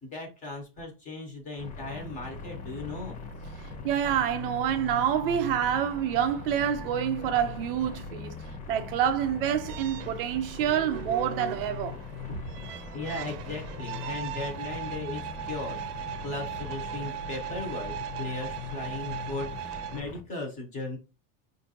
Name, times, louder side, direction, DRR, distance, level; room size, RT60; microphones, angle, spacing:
voice 1, 0.0-3.2 12.3-12.4 12.9-21.0, left 2 dB, 15° left, 0.9 m, -37 dB
sound 1, 1.6-20.2, left 5 dB, 50° left, 1.2 m, -40 dB
voice 2, 3.8-8.3 8.7-12.0, right 9 dB, 40° right, 0.4 m, -27 dB
sound 2, 9.7-20.0, right 11 dB, 85° right, 0.6 m, -39 dB
5.6 x 2.6 x 2.8 m
supercardioid pair, 180°, 45 cm